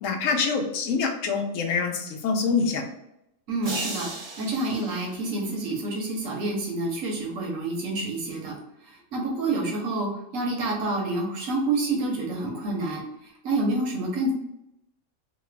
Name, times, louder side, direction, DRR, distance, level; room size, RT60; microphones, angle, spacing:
voice 1, 0.0-2.8, left 5 dB, 90° left, 3 dB, 1.0 m, -25 dB
voice 2, 3.5-4.1 4.4-8.5 8.8-13.0 13.4-14.3, right 2 dB, 85° right, 0 dB, 1.3 m, -28 dB
sound 1, 3.6-5.9, right 2 dB, 45° right, 0.8 m, -37 dB
3.2 x 2.2 x 3.2 m, 0.83 s
omnidirectional pair, 1.3 m